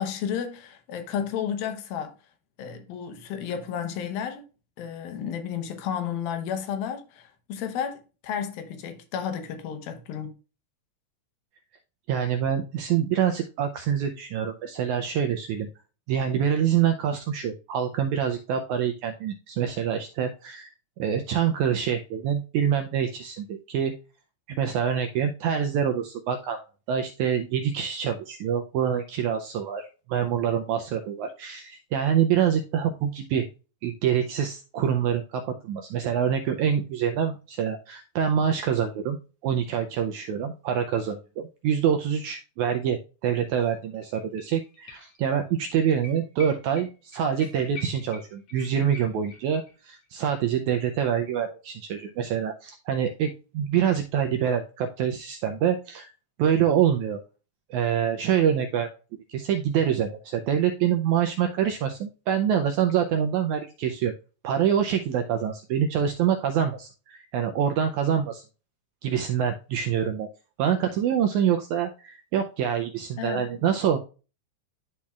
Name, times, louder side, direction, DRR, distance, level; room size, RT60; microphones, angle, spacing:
voice 1, 0.0-2.2 2.6-4.4 4.8-10.4 73.2-73.4, left 8 dB, 85° left, 2.8 m, -32 dB
voice 2, 12.1-15.7 16.1-20.7 21.0-23.9 24.5-26.6 26.9-33.5 33.8-39.2 39.4-56.1 56.4-57.2 57.7-58.9 59.3-64.1 64.4-68.4 69.0-70.3 70.6-74.0, right 8 dB, 90° right, 1.7 m, -26 dB
sound 1, 43.6-43.7 43.9-45.3 45.6-45.7 46.0-49.7 50.0-50.1, left 4 dB, 55° left, 2.7 m, -46 dB
12.0 x 4.3 x 2.3 m
omnidirectional pair, 4.1 m